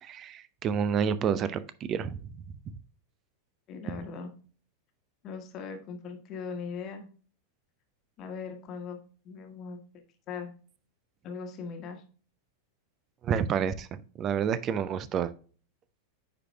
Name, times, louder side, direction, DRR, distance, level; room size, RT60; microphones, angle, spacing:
voice 1, 0.0-2.2 13.2-15.3, right 7 dB, 30° right, 15 dB, 0.5 m, -29 dB
voice 2, 3.7-4.3 5.2-7.1 8.2-9.0 9.2-10.5 11.2-12.0, left 5 dB, 35° left, 5 dB, 1.3 m, -39 dB
9.8 x 4.8 x 2.2 m, 0.39 s
figure-of-eight pair, 90°, 0 cm